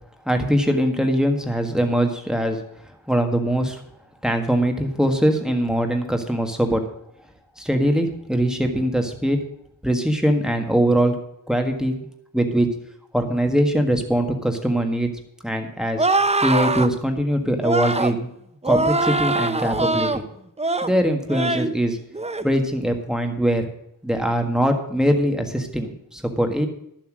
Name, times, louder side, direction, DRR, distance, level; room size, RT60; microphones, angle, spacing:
voice 1, 0.2-2.6 3.1-3.8 4.2-6.8 7.6-9.4 9.8-11.2 11.5-11.9 12.3-12.7 13.1-15.1 15.4-16.0 16.4-18.3 18.6-20.2 20.8-22.0 22.4-23.7 24.0-26.7, equal, ahead, 4 dB, 1.7 m, -22 dB
sound 1, 16.0-16.9 17.6-18.2 18.6-20.2 20.6-20.9 21.3-21.7 22.1-22.4, right 2 dB, 20° right, 0.7 m, -22 dB
11.5 x 7.6 x 6.3 m, 0.76 s
wide cardioid pair, 85°, 34 cm